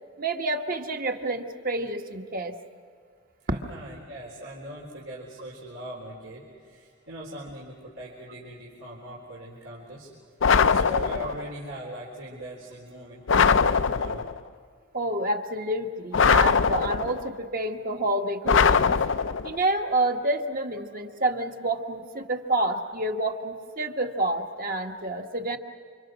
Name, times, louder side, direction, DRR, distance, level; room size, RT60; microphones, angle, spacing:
voice 1, 0.2-2.5 14.9-19.0 19.4-25.6, right 2 dB, 45° right, 4 dB, 1.5 m, -28 dB
voice 2, 3.4-10.1 10.6-14.2, right 1 dB, 85° right, -4 dB, 4.0 m, -40 dB
sound 1, 10.4-11.5 13.3-14.4 16.1-17.3 18.5-19.6, left 6 dB, 65° left, 0.6 m, -21 dB
29.0 x 26.0 x 6.3 m, 2.1 s
head